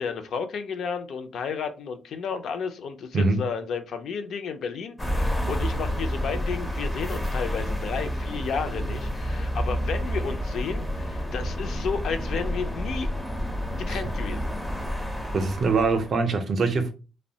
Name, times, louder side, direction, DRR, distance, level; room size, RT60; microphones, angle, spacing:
voice 1, 0.0-13.1 13.8-14.5, left 6 dB, 70° left, 0.4 m, -32 dB
sound 1, 5.0-16.1, equal, 5° left, 0.4 m, -29 dB
voice 2, 15.3-16.9, right 4 dB, 50° right, 0.4 m, -23 dB
2.7 x 2.1 x 2.6 m
cardioid pair, 135°, 0 cm